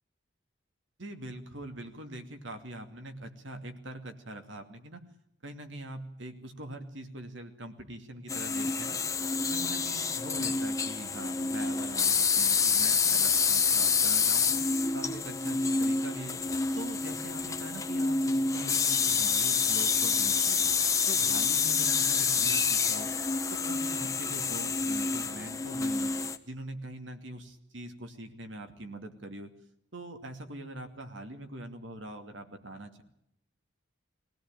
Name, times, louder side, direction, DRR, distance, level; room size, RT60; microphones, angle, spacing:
voice 1, 1.0-5.0 5.4-9.0 9.4-14.6 14.9-16.4 16.7-20.6 21.1-23.1 23.5-26.1 26.4-29.5 29.9-33.0, right 1 dB, 70° right, 6 dB, 2.5 m, -43 dB
sound 1, 8.3-26.4, left 5 dB, 15° left, 0.9 m, -28 dB
23.0 x 17.0 x 9.0 m, 0.77 s
head